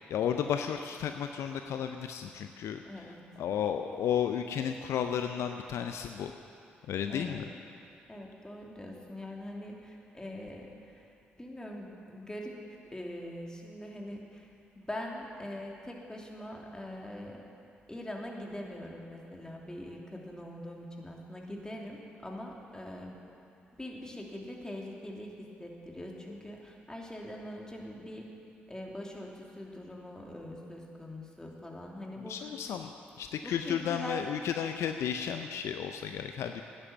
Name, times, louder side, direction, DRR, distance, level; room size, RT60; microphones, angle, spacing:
voice 1, 0.1-2.8 3.4-6.3 6.9-7.4 32.3-32.9 33.2-36.6, left 8 dB, 65° left, 6 dB, 0.6 m, -33 dB
voice 2, 2.8-3.3 7.1-7.4 8.1-12.6 12.9-17.5 17.9-23.2 23.7-28.3 28.7-32.8 33.4-34.4, left 1 dB, 15° left, -1 dB, 2.9 m, -43 dB
13.0 x 9.9 x 7.2 m, 2.6 s
hypercardioid pair, 40°, 5 cm